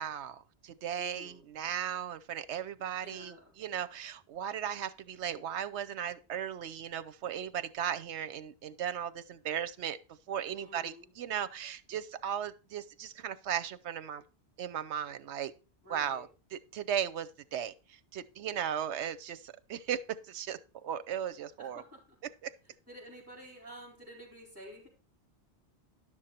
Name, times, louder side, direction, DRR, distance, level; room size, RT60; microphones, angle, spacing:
voice 1, 0.0-10.0 10.3-14.2 14.6-15.5 15.9-20.0 20.3-20.6 20.8-21.8 22.4-22.5, right 9 dB, 80° right, 1.0 m, -36 dB
voice 2, 1.0-1.5 3.0-3.5 10.5-11.1 15.8-16.3 21.6-22.2 22.6-24.9, equal, 10° right, 5.0 m, -50 dB
11.5 x 6.3 x 4.3 m
omnidirectional pair, 1.2 m